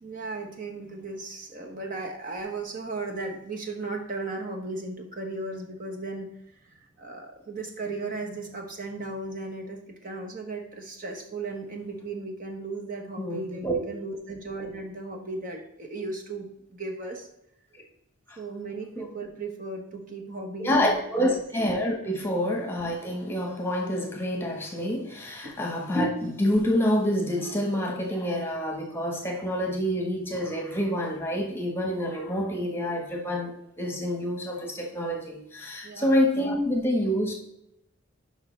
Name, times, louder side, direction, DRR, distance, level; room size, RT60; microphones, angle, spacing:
voice 1, 0.0-17.3 18.4-21.4 25.4-25.6 35.8-36.1, right 3 dB, 40° right, 1 dB, 1.1 m, -36 dB
voice 2, 13.2-13.8 18.3-18.4 19.0-19.1 20.6-33.5 33.8-37.3, equal, 10° left, 1 dB, 1.2 m, -27 dB
10.5 x 5.3 x 3.3 m, 0.78 s
head